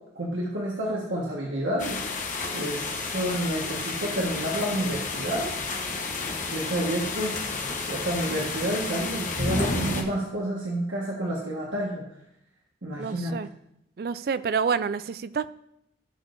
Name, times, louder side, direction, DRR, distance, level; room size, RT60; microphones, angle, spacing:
voice 1, 0.1-2.0 2.5-5.5 6.5-12.0 12.8-13.3, right 1 dB, 85° right, -4 dB, 1.5 m, -29 dB
sound 1, 1.8-10.0, left 3 dB, 40° left, 1.0 m, -31 dB
voice 2, 13.0-13.5 14.0-15.5, right 6 dB, 55° right, 15 dB, 0.3 m, -28 dB
17.0 x 6.1 x 2.6 m, 0.79 s
head